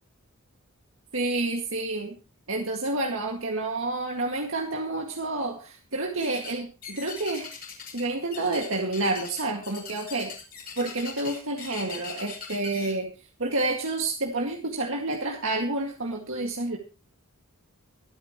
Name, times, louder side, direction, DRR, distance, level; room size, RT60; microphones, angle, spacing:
voice 1, 1.1-2.1 2.5-7.5 7.9-10.3 10.8-13.1 13.4-16.8, right 2 dB, 65° right, 1 dB, 2.0 m, -29 dB
sound 1, 6.2-6.6 6.8-8.0 8.3-12.9, left 6 dB, 40° left, 5.2 m, -40 dB
23.5 x 9.7 x 3.1 m, 0.34 s
head